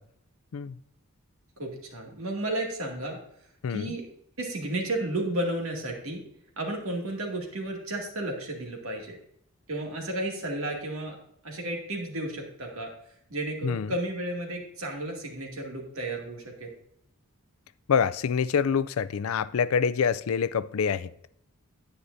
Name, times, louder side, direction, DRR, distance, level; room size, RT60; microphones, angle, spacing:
voice 1, 1.6-3.2 3.7-4.1 4.4-6.2 6.6-9.2 9.7-11.2 11.4-12.9 13.3-16.7, right 1 dB, 70° right, 2.3 m, -33 dB
voice 2, 3.6-3.9 13.6-13.9 17.9-21.1, left 6 dB, 75° left, 0.4 m, -26 dB
10.0 x 9.2 x 2.6 m
head